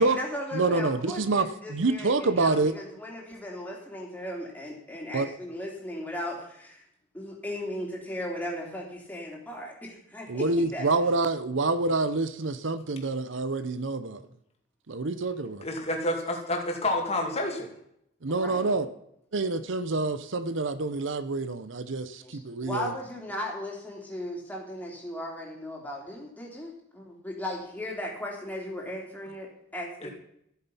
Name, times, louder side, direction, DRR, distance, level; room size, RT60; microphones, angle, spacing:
voice 1, 0.0-6.8 7.1-10.9 18.3-18.8 22.2-30.1, left 1 dB, 10° left, -2 dB, 3.2 m, -37 dB
voice 2, 0.5-2.7 5.1-5.3 10.3-14.2 14.9-15.6 18.2-18.9 19.3-22.9, right 3 dB, 70° right, 12 dB, 0.8 m, -27 dB
voice 3, 15.6-17.7 30.0-30.1, left 1 dB, 30° left, 1 dB, 2.3 m, -29 dB
13.5 x 8.6 x 5.6 m, 0.73 s
head